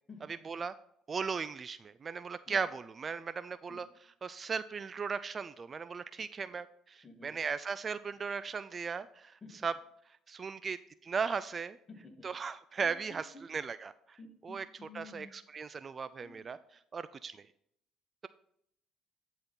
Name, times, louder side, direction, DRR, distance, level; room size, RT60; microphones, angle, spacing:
voice 1, 0.3-0.7 1.1-9.7 10.3-11.8 12.2-17.5, right 5 dB, 35° right, 15 dB, 0.3 m, -37 dB
voice 2, 7.0-7.3 9.4-9.5 11.9-12.3 12.8-12.9 14.2-15.3 16.2-16.4, left 4 dB, 25° left, 1 dB, 2.3 m, -51 dB
10.5 x 4.2 x 3.8 m, 0.71 s
supercardioid pair, 70°, 0 cm